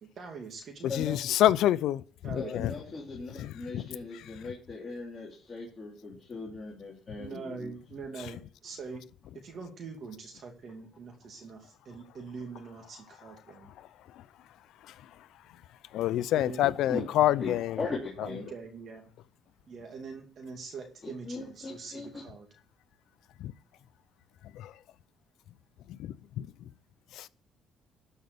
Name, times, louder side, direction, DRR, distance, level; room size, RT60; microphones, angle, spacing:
voice 1, 0.0-0.9 2.2-2.5 7.2-9.0 9.3-13.7 16.3-16.6 18.2-19.0 19.7-22.5, right 4 dB, 50° right, 2.4 m, -43 dB
voice 2, 0.9-2.0 2.5-2.7 3.4-3.8 15.9-17.8 23.4-23.5 24.5-24.7 26.0-26.5 27.2-27.3, left 13 dB, 75° left, 0.6 m, -27 dB
voice 3, 2.3-7.7 16.6-17.1 17.4-18.4 21.0-22.1, left 3 dB, 25° left, 3.1 m, -39 dB
12.5 x 5.5 x 6.9 m
cardioid pair, 130°, 0 cm